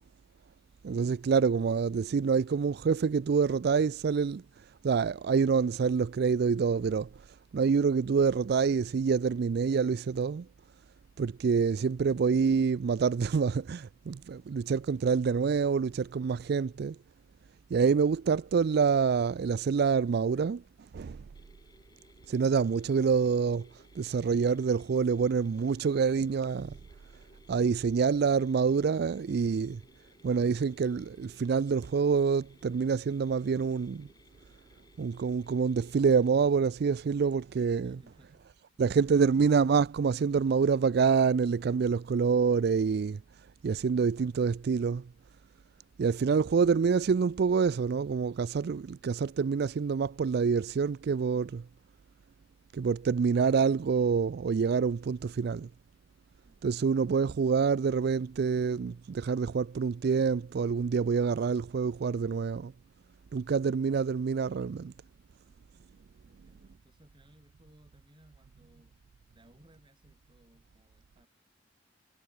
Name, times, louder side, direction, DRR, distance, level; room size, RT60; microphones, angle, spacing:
voice 1, 0.8-4.4 4.8-7.1 7.5-10.5 11.2-17.0 17.7-20.6 20.9-21.2 22.3-26.8 27.5-29.8 30.2-34.1 35.0-38.0 38.8-43.2 43.6-45.1 46.0-51.6 52.7-55.7 56.6-62.7 63.3-64.9, right 5 dB, 60° right, 0.4 m, -27 dB
Mechanisms, 21.3-36.4, left 2 dB, 20° left, 5.4 m, -62 dB
voice 2, 37.8-38.5 56.4-57.2 66.2-69.0 69.3-71.3, equal, 25° right, 7.0 m, -62 dB
head